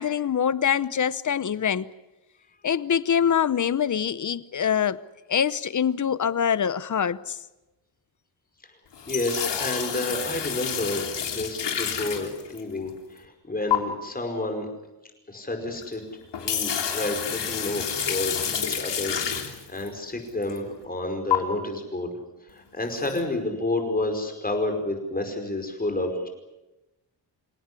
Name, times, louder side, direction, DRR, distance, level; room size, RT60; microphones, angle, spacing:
voice 1, 0.0-1.9 2.6-5.0 5.3-7.4, left 8 dB, 45° left, 0.8 m, -24 dB
sound 1, 8.9-12.8 13.7-13.8 15.8-15.9 16.2-19.9 20.4-20.6 21.3-21.4 22.9-23.2, left 8 dB, 70° left, 3.4 m, -29 dB
voice 2, 9.1-14.7 15.3-16.0 16.4-22.2 22.5-26.3, left 2 dB, 20° left, 5.0 m, -30 dB
27.5 x 17.5 x 9.8 m
wide cardioid pair, 145°, 43 cm